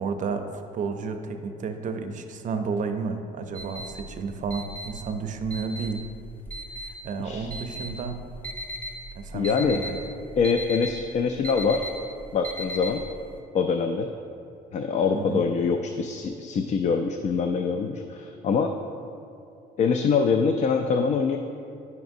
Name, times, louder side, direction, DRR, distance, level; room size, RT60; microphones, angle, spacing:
voice 1, 0.0-6.1 7.0-8.2 9.1-10.0 15.1-15.5, right 5 dB, 50° right, 7 dB, 0.5 m, -31 dB
sound 1, 3.5-13.3, equal, 10° left, 0.9 m, -37 dB
voice 2, 9.3-9.8 10.4-11.9 12.3-13.0 13.5-14.1 14.7-18.7 19.8-21.4, left 5 dB, 45° left, 6 dB, 0.4 m, -24 dB
9.3 x 5.9 x 2.6 m, 2.6 s
cardioid pair, 110°, 17 cm